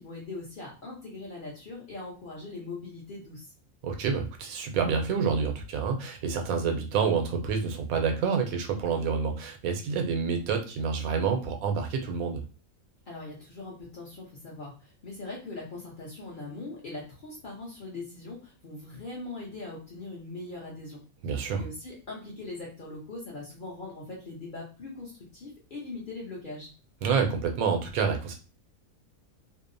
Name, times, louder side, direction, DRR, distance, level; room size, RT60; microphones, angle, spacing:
voice 1, 0.0-3.4 13.1-21.0 21.3-26.7, left 2 dB, 45° left, -4 dB, 0.7 m, -41 dB
voice 2, 3.8-12.4 21.2-21.6 27.0-28.4, right 5 dB, 80° right, 4 dB, 1.0 m, -28 dB
2.7 x 2.0 x 2.5 m, 0.35 s
omnidirectional pair, 1.5 m